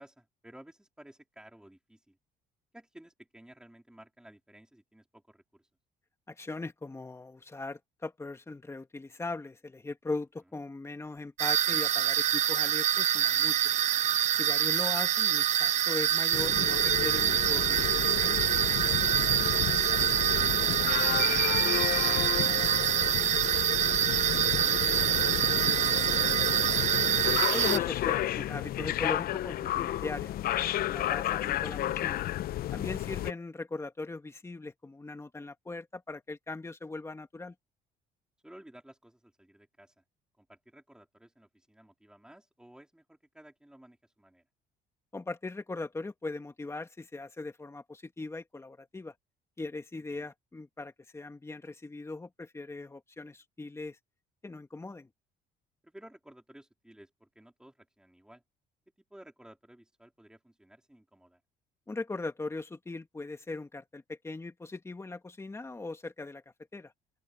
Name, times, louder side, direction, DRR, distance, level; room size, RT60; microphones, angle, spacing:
voice 1, 0.0-2.2 2.7-5.7 19.2-19.6 19.9-22.8 23.1-27.0 38.4-40.0 40.4-44.4 50.1-50.3 55.8-58.4 59.1-61.4, right 1 dB, 5° right, 3.9 m, -55 dB
voice 2, 6.3-13.7 14.4-18.4 27.5-32.2 32.7-37.5 45.1-49.1 49.6-54.0 54.4-55.1 61.9-66.4 66.7-66.9, left 3 dB, 15° left, 2.0 m, -39 dB
sound 1, 11.4-27.8, right 11 dB, 45° right, 0.4 m, -26 dB
sound 2, 16.3-33.3, left 13 dB, 60° left, 0.7 m, -32 dB
open air
cardioid pair, 110°, 17 cm